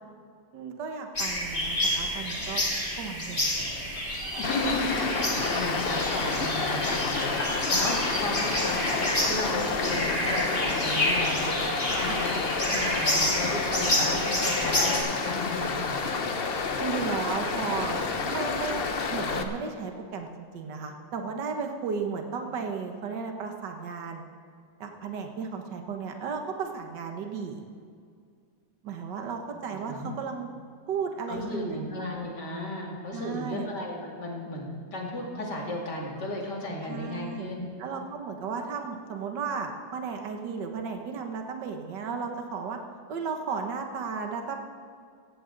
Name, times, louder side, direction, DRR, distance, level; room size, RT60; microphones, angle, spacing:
voice 1, 0.5-3.8 12.0-12.2 16.8-18.0 18.2-24.2 24.8-27.6 28.8-30.5 30.9-31.8 33.1-33.7 36.8-37.5 37.8-42.8 43.1-44.6, right 5 dB, 70° right, 4 dB, 1.8 m, -34 dB
sound 1, 1.1-15.0, left 1 dB, 25° left, 3.1 m, -29 dB
voice 2, 4.4-16.1 29.9-30.2 31.3-37.7, left 1 dB, 65° left, -2 dB, 3.1 m, -34 dB
Stream, 4.4-19.4, left 4 dB, 45° left, 0.8 m, -30 dB
16.5 x 15.5 x 4.0 m, 2.2 s
omnidirectional pair, 2.0 m